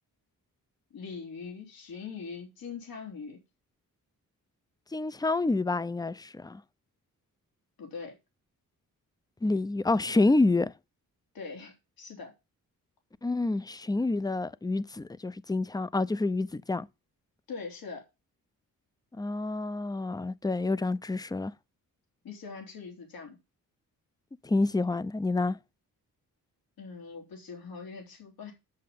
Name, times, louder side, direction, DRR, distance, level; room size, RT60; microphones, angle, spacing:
voice 1, 0.9-3.4 7.8-8.2 11.3-12.3 17.5-18.0 22.2-23.4 26.8-28.5, left 5 dB, 85° left, 3.6 m, -42 dB
voice 2, 4.9-6.6 9.4-10.7 13.2-16.9 19.2-21.5 24.4-25.6, left 2 dB, 10° left, 0.6 m, -28 dB
7.9 x 7.5 x 5.3 m
cardioid pair, 80°, 35 cm